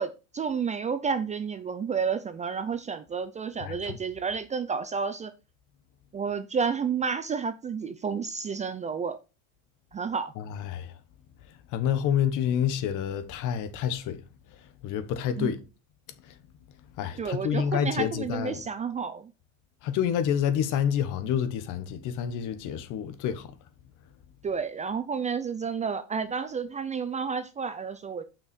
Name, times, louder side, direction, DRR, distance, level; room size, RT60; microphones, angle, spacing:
voice 1, 0.0-5.3 6.1-9.2 9.9-10.3 15.4-15.5 17.2-19.3 24.4-28.2, right 6 dB, 20° right, 0.5 m, -31 dB
voice 2, 3.6-4.0 10.4-10.9 11.7-14.2 14.8-15.6 17.0-18.6 19.8-23.5, left 9 dB, 50° left, 1.3 m, -28 dB
6.9 x 5.8 x 5.2 m
supercardioid pair, 125°, 38 cm